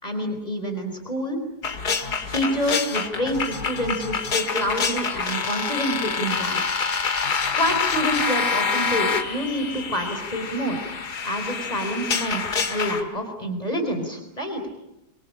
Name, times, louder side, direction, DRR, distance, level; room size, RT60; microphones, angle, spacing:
voice 1, 0.0-1.4 2.3-6.8 7.5-10.8 11.2-12.4 12.7-14.6, equal, 25° left, 5 dB, 4.5 m, -27 dB
sound 1, 1.6-13.0, left 5 dB, 90° left, 2.5 m, -26 dB
26.5 x 24.5 x 8.8 m, 0.91 s
omnidirectional pair, 1.7 m